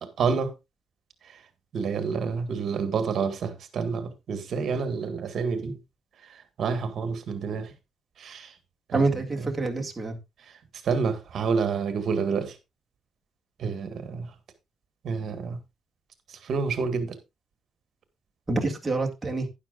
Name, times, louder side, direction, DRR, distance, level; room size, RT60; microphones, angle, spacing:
voice 1, 0.2-0.5 1.7-5.8 6.6-7.7 8.2-8.5 8.9-9.0 9.4-9.5 10.8-12.6 13.6-14.3 15.0-15.6 16.4-17.2, right 5 dB, 55° right, 1.7 m, -28 dB
voice 2, 8.9-10.2 18.5-19.5, right 3 dB, 15° right, 2.1 m, -27 dB
12.0 x 10.5 x 2.4 m
cardioid pair, 155°, 0 cm